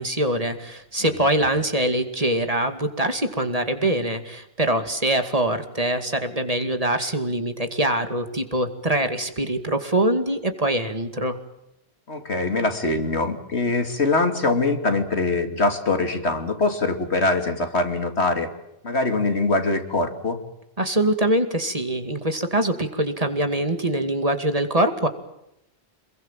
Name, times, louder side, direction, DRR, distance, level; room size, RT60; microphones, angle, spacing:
voice 1, 0.0-11.4 20.8-25.1, right 1 dB, 35° right, 7 dB, 2.4 m, -23 dB
voice 2, 12.1-18.5 18.8-20.4, left 3 dB, 80° left, 6 dB, 3.1 m, -23 dB
27.5 x 22.0 x 7.5 m, 0.85 s
omnidirectional pair, 1.1 m